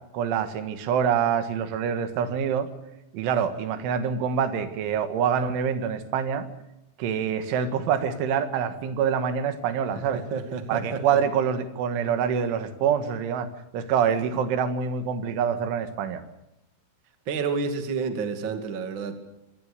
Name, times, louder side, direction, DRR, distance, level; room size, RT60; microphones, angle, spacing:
voice 1, 0.1-2.7 3.1-6.5 7.0-10.2 10.7-13.5 13.7-16.2, right 7 dB, 80° right, 10 dB, 4.0 m, -26 dB
voice 2, 10.0-11.0 17.3-19.2, right 5 dB, 35° right, 7 dB, 2.0 m, -30 dB
25.5 x 18.5 x 6.7 m, 0.92 s
omnidirectional pair, 5.5 m